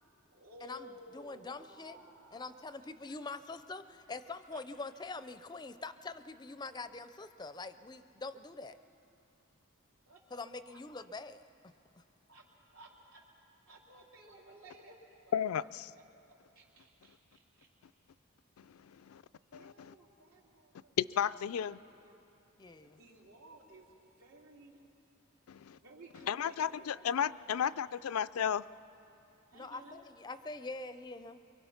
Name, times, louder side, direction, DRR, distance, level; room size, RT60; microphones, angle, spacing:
voice 1, 0.3-3.4 4.1-4.2 4.5-4.6 10.1-10.2 10.6-10.8 12.3-12.4 12.7-13.2 13.7-15.0 15.3-17.7 19.4-21.0 21.6-22.2 23.0-24.8 25.7-27.9 29.5-30.0, right 1 dB, 85° right, -3 dB, 3.5 m, -57 dB
voice 2, 1.1-2.0 2.3-8.7 10.3-11.4 22.6-23.0 29.5-31.4, left 3 dB, 20° left, 12 dB, 0.4 m, -44 dB
voice 3, 15.3-15.9 18.6-18.7 19.0-19.2 19.5-19.9 21.0-21.8 25.5-25.8 26.3-28.7, left 8 dB, 85° left, 16 dB, 0.4 m, -33 dB
23.5 x 23.5 x 5.8 m, 2.8 s
head